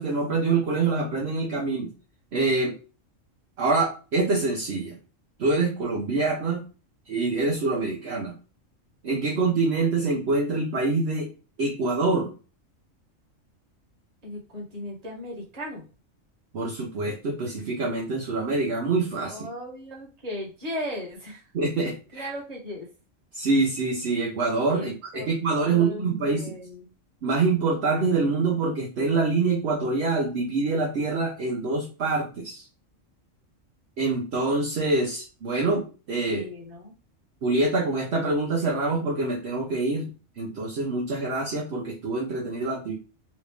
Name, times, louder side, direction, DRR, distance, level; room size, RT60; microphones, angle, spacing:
voice 1, 0.0-1.9 2.3-2.8 3.6-4.9 5.4-6.6 7.1-8.3 9.0-11.3 11.6-12.3 16.5-19.4 21.5-22.3 23.3-26.5 27.2-32.6 34.0-36.4 37.4-40.1 40.4-43.0, right 3 dB, 60° right, -1 dB, 0.9 m, -25 dB
voice 2, 14.2-15.9 19.3-21.5 22.1-22.9 24.7-25.3 25.6-26.9 36.3-36.9, left 1 dB, 30° right, -2 dB, 1.1 m, -37 dB
3.1 x 2.5 x 3.4 m, 0.34 s
omnidirectional pair, 1.4 m